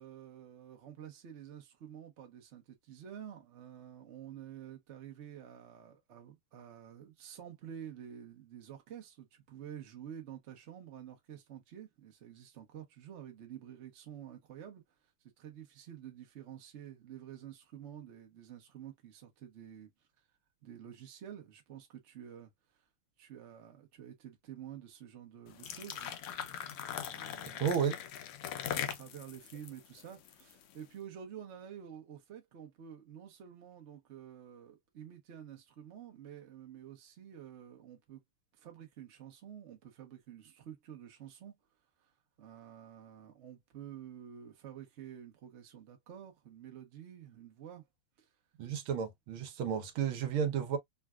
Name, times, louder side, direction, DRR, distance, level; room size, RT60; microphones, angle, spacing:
voice 1, 0.0-14.8 15.4-19.9 20.6-22.5 23.2-26.2 27.0-27.7 28.7-38.2 38.6-41.6 42.0-42.1 42.4-47.9 48.2-48.3, right 9 dB, 55° right, 0.7 m, -49 dB
sound 1, 25.5-30.7, left 10 dB, 75° left, 1.4 m, -40 dB
voice 2, 27.6-28.0 48.6-50.8, right 7 dB, 75° right, 1.6 m, -32 dB
3.9 x 2.3 x 2.3 m
omnidirectional pair, 2.4 m